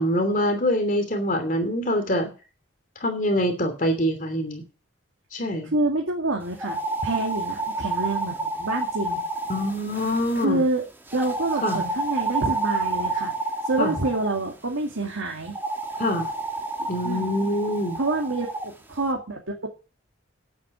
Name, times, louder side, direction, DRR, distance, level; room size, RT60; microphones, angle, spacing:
voice 1, 0.0-2.3 3.0-4.6 5.3-5.7 9.5-10.6 11.6-11.8 13.8-14.0 16.0-16.3 16.9-18.0, left 1 dB, 40° left, 6 dB, 2.8 m, -24 dB
voice 2, 5.7-9.2 10.3-10.8 11.1-13.3 13.6-15.6 16.8-17.3 18.0-19.7, right 2 dB, 85° right, 1 dB, 2.2 m, -27 dB
sound 1, 6.5-10.4 11.1-14.4 15.5-18.7, right 2 dB, 10° right, 1.5 m, -29 dB
9.7 x 8.6 x 8.3 m, 0.34 s
head